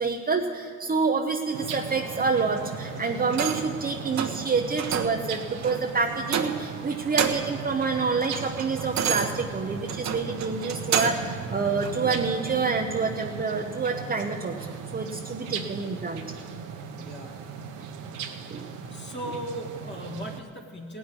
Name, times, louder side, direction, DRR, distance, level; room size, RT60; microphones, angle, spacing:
voice 1, 0.0-16.2 17.0-17.1 17.8-17.9 18.5-18.7, right 4 dB, 30° right, 2 dB, 0.9 m, -28 dB
sound 1, 1.5-20.4, right 6 dB, 85° right, 1.1 m, -37 dB
sound 2, 3.3-3.8 4.2-4.4 4.8-5.2 5.6-5.8 6.3-6.8 7.0-7.6 8.0-11.3 11.8-12.0, right 8 dB, 65° right, 1.2 m, -29 dB
voice 2, 16.9-17.5 18.9-21.0, equal, 35° left, 0 dB, 1.8 m, -38 dB
17.0 x 6.2 x 9.7 m, 2.4 s
cardioid pair, 90°, 30 cm